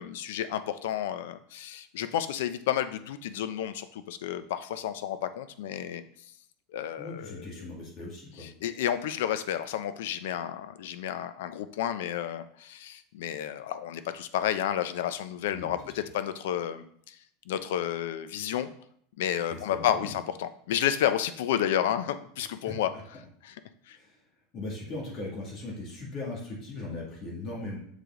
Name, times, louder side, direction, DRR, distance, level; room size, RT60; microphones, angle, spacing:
voice 1, 0.0-6.0 6.7-7.5 8.4-17.2 17.5-18.7 19.2-22.9 23.4-23.6 23.9-24.0, left 10 dB, 85° left, 11 dB, 0.6 m, -31 dB
voice 2, 7.0-8.5 15.5-15.7 19.5-20.2 22.7-22.8 23.9-24.2 24.5-27.8, left 2 dB, 35° left, -3 dB, 2.3 m, -38 dB
6.7 x 4.8 x 3.8 m, 0.65 s
supercardioid pair, 160°, 0 cm